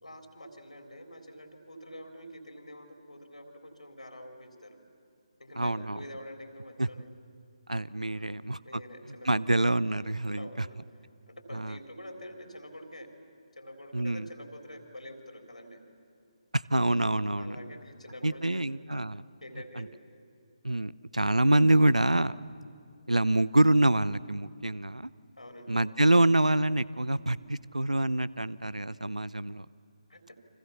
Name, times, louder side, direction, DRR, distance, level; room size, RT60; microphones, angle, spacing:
voice 1, 0.0-4.8 5.4-7.1 8.1-8.3 8.6-9.4 10.4-10.8 11.3-13.1 13.6-15.8 17.4-18.7 19.4-19.9 25.4-25.8 30.1-30.2, equal, 85° left, 4 dB, 3.8 m, -46 dB
voice 2, 5.6-6.0 6.8-6.9 7.7-8.8 9.2-10.7 11.5-11.8 13.9-14.3 16.5-17.7 18.2-19.3 19.8-19.9 20.6-22.4 23.1-25.1 25.7-29.7, right 1 dB, 90° right, 20 dB, 0.7 m, -26 dB
29.5 x 25.0 x 7.2 m, 2.4 s
figure-of-eight pair, 145°, 4 cm